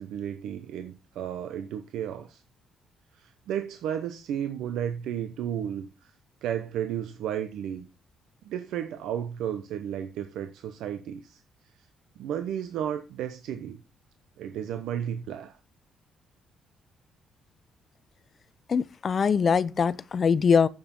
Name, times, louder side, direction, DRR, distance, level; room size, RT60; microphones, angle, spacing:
voice 1, 0.0-2.4 3.1-6.1 6.4-7.8 8.4-11.4 12.2-13.8 14.4-15.6, right 9 dB, 85° right, 0.8 m, -33 dB
voice 2, 18.7-20.7, left 6 dB, 35° left, 0.5 m, -22 dB
7.9 x 7.0 x 5.4 m
cardioid pair, 145°, 0 cm